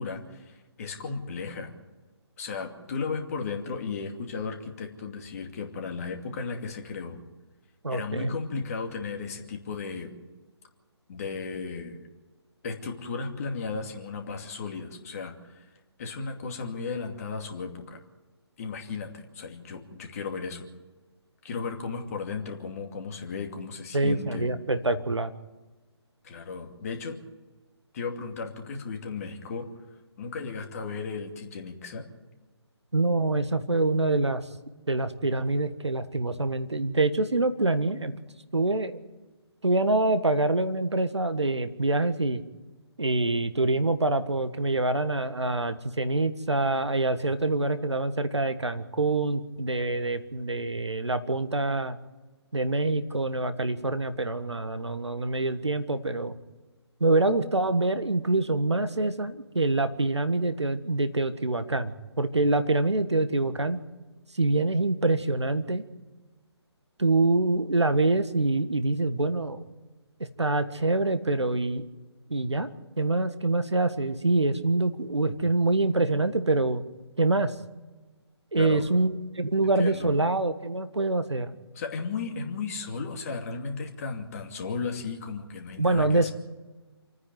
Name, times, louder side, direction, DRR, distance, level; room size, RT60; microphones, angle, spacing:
voice 1, 0.0-1.7 2.4-7.2 7.9-10.1 11.1-12.0 12.6-15.7 16.0-18.0 18.6-20.7 21.4-24.5 26.2-27.2 27.9-29.7 30.2-32.0 78.5-78.9 79.6-80.1 81.7-86.3, left 4 dB, 35° left, 3 dB, 2.5 m, -35 dB
voice 2, 7.8-8.4 23.9-25.3 32.9-34.4 34.9-38.1 38.5-38.9 39.6-42.4 43.0-52.0 52.5-56.4 57.0-63.8 64.3-65.8 67.0-69.6 70.4-71.8 72.3-72.7 73.0-76.8 77.2-77.5 78.5-81.5 85.8-86.3, right 2 dB, 75° right, 11 dB, 1.5 m, -25 dB
28.5 x 9.8 x 9.5 m, 1.2 s
figure-of-eight pair, 145°, 14 cm